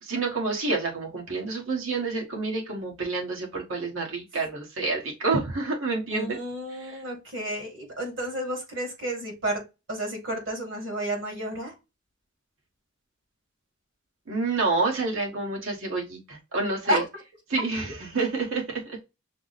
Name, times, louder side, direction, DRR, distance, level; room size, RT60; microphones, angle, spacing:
voice 1, 0.0-6.4 6.7-7.0 14.3-17.0 17.5-19.0, right 3 dB, 85° right, 1.4 m, -28 dB
voice 2, 6.1-9.6 9.9-11.7 16.9-17.0 17.6-17.7, right 1 dB, 70° right, 2.1 m, -31 dB
5.8 x 2.0 x 4.0 m
head